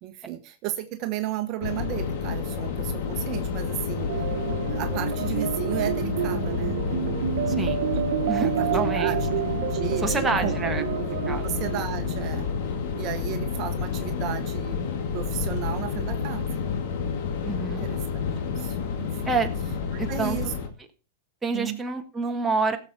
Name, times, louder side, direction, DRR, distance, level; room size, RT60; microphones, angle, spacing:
voice 1, 0.0-4.1 4.7-7.7 8.4-9.2 9.7-12.5 12.9-14.8 15.1-16.5 17.6-19.3 20.1-20.5 21.5-21.8, right 12 dB, 40° right, 7 dB, 1.1 m, -34 dB
sound 1, 1.6-20.7, left 6 dB, 60° left, 2.2 m, -29 dB
sound 2, 4.1-12.7, right 11 dB, 65° right, 1.2 m, -29 dB
voice 2, 7.5-7.8 8.3-9.2 10.0-10.8 11.3-11.4 17.4-17.8 19.2-19.5 20.0-20.4 21.4-22.8, right 4 dB, 10° right, 4 dB, 1.5 m, -27 dB
16.0 x 7.1 x 4.3 m, 0.34 s
hypercardioid pair, 125°, 0 cm